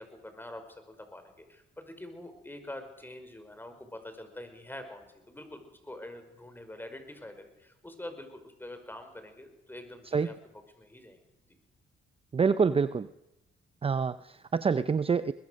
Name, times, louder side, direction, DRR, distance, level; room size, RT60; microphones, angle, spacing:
voice 1, 0.0-10.3 10.8-11.2, left 1 dB, 10° left, 7 dB, 5.5 m, -45 dB
voice 2, 12.3-13.1 13.8-15.3, right 5 dB, 30° right, 13 dB, 0.7 m, -26 dB
22.5 x 21.0 x 6.6 m, 0.96 s
cardioid pair, 90°, 20 cm